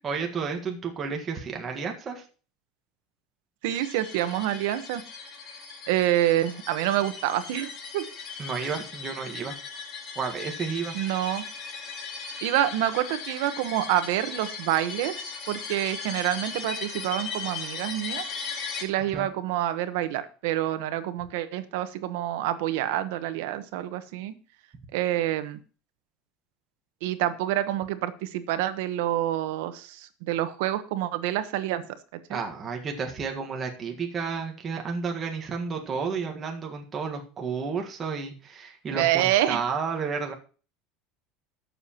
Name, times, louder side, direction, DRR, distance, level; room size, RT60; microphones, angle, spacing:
voice 1, 0.0-2.2 8.4-9.5 10.1-11.0 19.1-19.3 32.3-40.3, right 5 dB, 25° right, 2 dB, 1.6 m, -31 dB
voice 2, 3.6-5.0 5.9-8.0 10.9-11.4 12.4-18.3 18.8-24.3 24.9-25.6 27.0-31.8 32.3-32.4 38.9-39.6, right 13 dB, 75° right, 11 dB, 1.1 m, -27 dB
sound 1, 3.7-18.8, left 5 dB, 40° left, 2.2 m, -38 dB
20.0 x 6.9 x 3.0 m, 0.37 s
cardioid pair, 155°, 0 cm